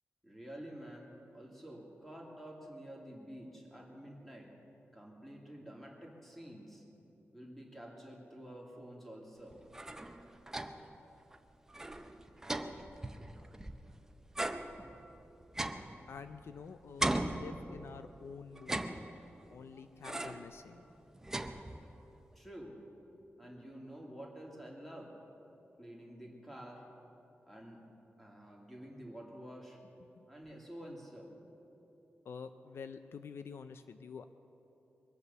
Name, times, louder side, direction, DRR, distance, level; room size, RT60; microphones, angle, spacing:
voice 1, 0.2-4.5 4.9-6.8 7.3-9.6 22.3-22.8 23.4-25.1 25.8-26.8 27.5-27.8 28.2-29.8 30.3-31.4, equal, 5° left, -2 dB, 2.3 m, -49 dB
sound 1, 9.5-11.0 11.3-11.4 11.7-13.9 14.3-16.6 17.0-18.1 18.6-19.5 20.0-20.5 20.9-22.1, right 1 dB, 10° right, 0.6 m, -39 dB
voice 2, 16.1-19.0 19.5-20.8 30.2-30.3 32.3-34.3, left 6 dB, 70° left, 10 dB, 0.5 m, -48 dB
22.5 x 8.2 x 6.9 m, 3.0 s
wide cardioid pair, 175°, 4 cm